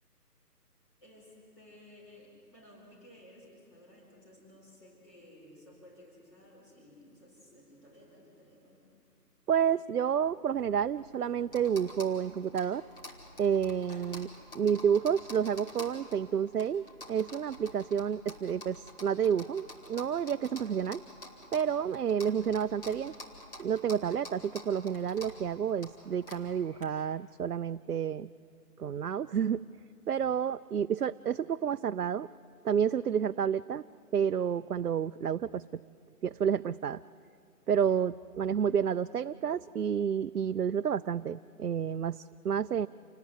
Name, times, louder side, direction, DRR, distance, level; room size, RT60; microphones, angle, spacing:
voice 1, 1.0-8.9, left 1 dB, 20° left, -5 dB, 4.4 m, -56 dB
voice 2, 9.5-12.8 13.4-14.3 14.5-21.0 21.5-23.1 23.6-28.3 28.8-29.6 30.1-32.3 32.6-33.8 34.1-35.6 36.2-37.0 37.7-42.9, right 8 dB, 65° right, 10 dB, 0.6 m, -30 dB
sound 1, 10.8-26.8, left 1 dB, 35° left, 2.8 m, -49 dB
28.0 x 19.0 x 9.6 m, 2.3 s
figure-of-eight pair, 175°, 48 cm